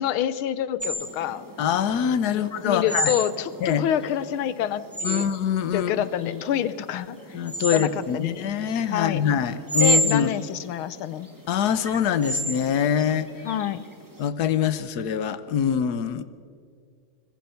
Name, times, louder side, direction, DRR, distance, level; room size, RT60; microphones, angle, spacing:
voice 1, 0.0-1.4 2.3-5.3 5.7-7.4 7.7-8.3 8.9-9.2 9.8-11.3 13.4-13.9, left 10 dB, 85° left, 15 dB, 1.7 m, -27 dB
sound 1, 0.8-14.2, right 1 dB, 10° right, 1.9 m, -31 dB
voice 2, 1.6-3.1 3.6-3.8 5.0-6.4 7.3-10.3 11.5-13.3 14.2-16.2, left 8 dB, 55° left, 13 dB, 1.3 m, -24 dB
25.0 x 21.0 x 5.8 m, 2.1 s
omnidirectional pair, 2.3 m